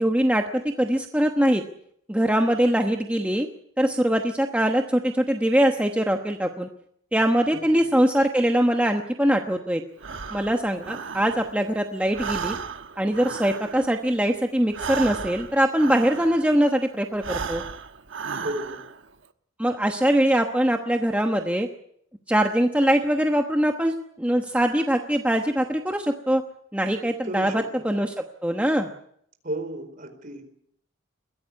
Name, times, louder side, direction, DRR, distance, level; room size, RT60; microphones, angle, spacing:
voice 1, 0.0-1.6 2.1-3.5 3.8-6.7 7.1-9.8 10.3-12.5 13.0-17.6 19.6-21.7 22.3-26.4 26.7-28.9, right 1 dB, 5° right, 4 dB, 1.1 m, -22 dB
voice 2, 7.5-7.9 18.3-18.8 27.2-27.9 29.4-30.4, right 1 dB, 40° right, 6 dB, 4.5 m, -33 dB
Breathing, 10.0-11.7 12.0-16.6 17.1-19.0, right 6 dB, 70° right, 1.2 m, -34 dB
22.0 x 16.5 x 9.7 m, 0.70 s
head